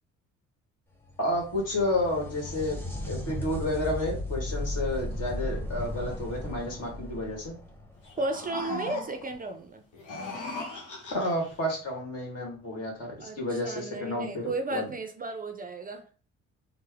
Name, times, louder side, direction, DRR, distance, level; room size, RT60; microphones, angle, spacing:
sound 1, 1.0-8.6 12.0-12.1 13.2-13.3, left 1 dB, 5° left, 0.8 m, -36 dB
voice 1, 1.2-7.5 11.1-14.8, left 1 dB, 55° left, 1.5 m, -31 dB
sound 2, 8.0-9.4 9.9-11.5, left 3 dB, 90° left, 0.9 m, -38 dB
voice 2, 8.2-9.9 13.2-16.1, right 2 dB, 30° right, 0.4 m, -34 dB
3.3 x 2.1 x 3.4 m
cardioid pair, 90°, 30 cm